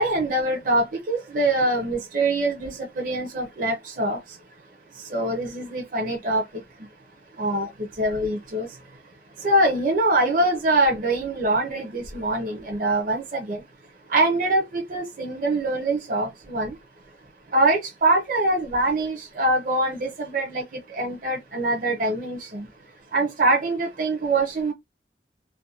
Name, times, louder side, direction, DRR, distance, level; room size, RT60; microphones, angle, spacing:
voice 1, 0.0-4.2 5.1-6.4 7.4-7.7 8.0-8.7 9.4-13.6 14.1-16.7 17.5-20.6 21.0-22.7 23.1-24.7, right 2 dB, 50° right, 0.6 m, -23 dB
2.4 x 2.2 x 2.7 m
head